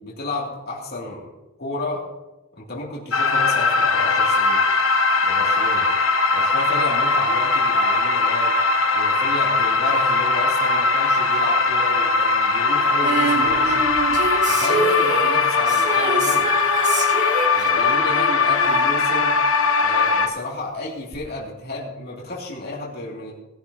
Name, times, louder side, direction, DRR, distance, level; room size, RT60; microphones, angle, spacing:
voice 1, 0.0-1.3 1.6-2.0 2.5-4.6 5.2-5.9 6.3-8.6 8.9-13.9 14.5-16.5 17.5-19.4 19.8-23.3, left 2 dB, 50° left, -4 dB, 2.6 m, -32 dB
sound 1, 3.1-20.3, left 3 dB, 70° left, 1.2 m, -20 dB
Female singing, 13.0-20.0 21.1-21.2, right 3 dB, 35° right, 2.1 m, -27 dB
19.0 x 11.0 x 2.8 m, 1.0 s
head